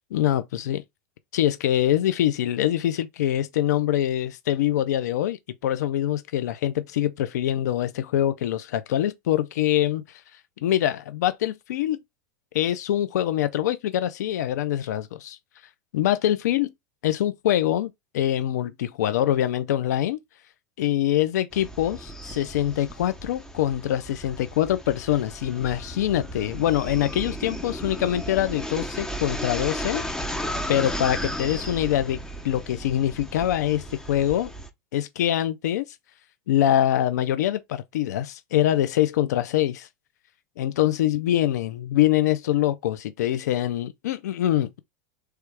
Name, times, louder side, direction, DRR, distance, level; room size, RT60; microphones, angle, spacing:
voice 1, 0.1-0.8 1.3-10.2 10.6-12.0 12.5-15.4 15.9-16.7 17.0-20.2 20.8-30.0 30.7-32.2 32.4-34.5 34.9-35.8 36.5-39.9 40.6-44.8, left 12 dB, 80° left, 0.5 m, -24 dB
sound 1, 21.5-34.7, equal, 5° left, 0.9 m, -35 dB
3.3 x 3.1 x 4.7 m
hypercardioid pair, 105°, 9 cm